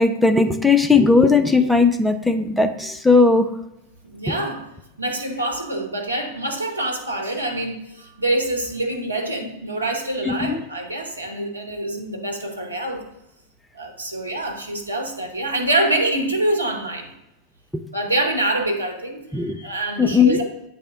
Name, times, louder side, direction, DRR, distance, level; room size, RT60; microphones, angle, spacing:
voice 1, 0.0-3.5 4.3-4.4 10.3-10.6 17.7-17.8 19.3-19.6 20.0-20.4, left 4 dB, 5° left, 7 dB, 0.5 m, -17 dB
voice 2, 4.0-4.6 5.0-13.0 13.7-17.1 17.9-20.4, right 1 dB, 80° right, 1 dB, 1.0 m, -25 dB
8.4 x 3.5 x 3.6 m, 0.88 s
figure-of-eight pair, 90°, 0 cm